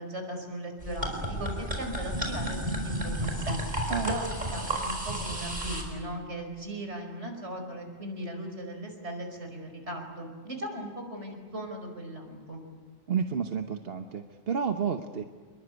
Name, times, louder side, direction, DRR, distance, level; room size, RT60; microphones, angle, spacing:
voice 1, 0.0-2.6 2.8-4.2 4.5-12.6, right 1 dB, 80° right, 4 dB, 5.6 m, -38 dB
sound 1, 0.8-5.8, right 1 dB, 40° right, 5.2 m, -32 dB
voice 2, 13.1-15.2, right 6 dB, 60° right, 6 dB, 1.3 m, -30 dB
28.5 x 22.0 x 8.2 m, 1.5 s
omnidirectional pair, 1.1 m